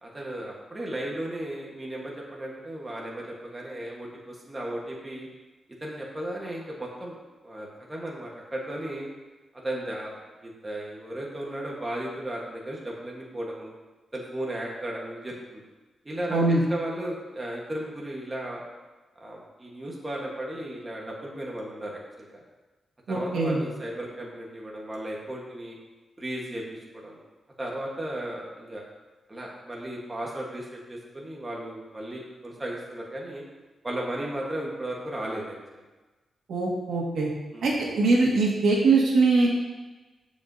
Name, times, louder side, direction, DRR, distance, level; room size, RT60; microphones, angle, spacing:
voice 1, 0.0-5.3 5.8-7.2 7.4-9.1 9.6-10.1 10.4-13.7 14.1-15.6 16.0-18.6 19.1-22.4 23.1-25.8 26.2-27.2 27.6-28.8 29.3-33.4 33.8-35.8 37.5-37.7, right 1 dB, 15° right, -3 dB, 1.3 m, -35 dB
voice 2, 23.1-23.6 36.5-37.3 37.6-39.5, right 3 dB, 80° right, -3 dB, 1.8 m, -22 dB
13.5 x 5.1 x 2.7 m, 1.2 s
wide cardioid pair, 155°, 0 cm